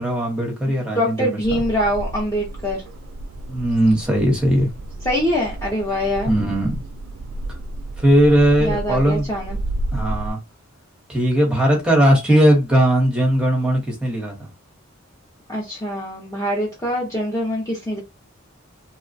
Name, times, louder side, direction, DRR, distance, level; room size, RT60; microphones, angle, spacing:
voice 1, 0.0-1.6 3.5-4.7 6.3-6.8 8.0-9.3 9.9-10.4 11.1-14.5, equal, 5° right, 0.9 m, -18 dB
voice 2, 0.9-2.8 5.0-6.3 8.6-9.6 15.5-18.0, equal, 15° left, 0.6 m, -24 dB
sound 1, 1.4-10.3, right 1 dB, 75° right, 0.3 m, -31 dB
2.9 x 2.2 x 2.6 m
head